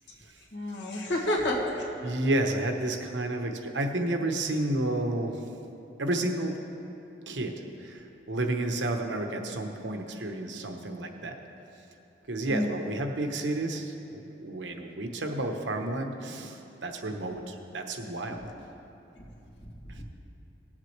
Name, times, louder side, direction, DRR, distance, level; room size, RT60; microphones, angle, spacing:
voice 1, 0.5-1.9 12.5-12.7 18.3-18.5 19.6-19.7 19.9-20.0, left 1 dB, 75° left, -1 dB, 1.8 m, -30 dB
voice 2, 2.0-5.4 6.0-6.6 7.3-7.5 7.8-11.4 12.3-18.4, right 1 dB, 85° right, 4 dB, 1.0 m, -31 dB
18.5 x 7.4 x 3.3 m, 2.9 s
head